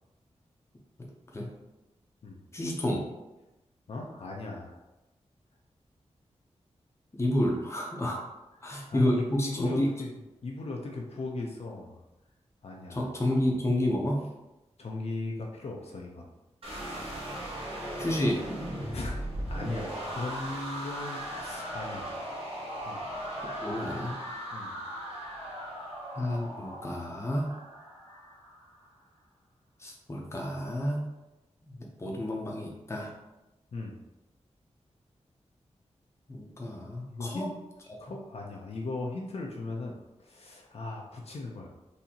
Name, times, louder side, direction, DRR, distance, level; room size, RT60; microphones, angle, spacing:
voice 1, 2.5-3.1 7.1-8.2 8.6-9.9 12.9-14.2 18.0-18.4 23.4-24.1 26.1-27.5 29.8-31.0 31.7-33.1 36.3-37.5 37.9-38.0, left 1 dB, 25° left, -1 dB, 0.6 m, -30 dB
voice 2, 3.9-4.8 8.9-10.1 10.4-12.0 12.6-13.1 14.8-16.3 18.9-19.2 19.5-22.1 22.8-23.0 24.5-24.8 33.7-34.0 37.1-37.5 38.0-41.7, left 2 dB, 60° left, -1 dB, 0.6 m, -38 dB
sound 1, 16.6-28.7, equal, 55° right, 1.2 m, -38 dB
4.1 x 2.7 x 2.8 m, 1.0 s
wide cardioid pair, 135°, 12 cm